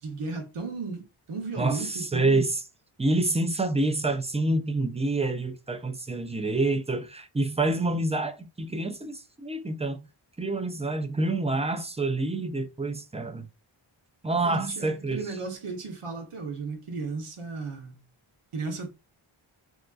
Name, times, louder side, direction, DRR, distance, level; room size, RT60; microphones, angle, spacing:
voice 1, 0.0-2.4 14.4-18.0 18.5-18.9, right 4 dB, 90° right, 0.9 m, -35 dB
voice 2, 1.6-2.6 3.0-10.0 10.4-13.5 14.2-15.2, right 2 dB, 15° right, 0.4 m, -27 dB
3.6 x 2.4 x 2.3 m
wide cardioid pair, 60°, 50 cm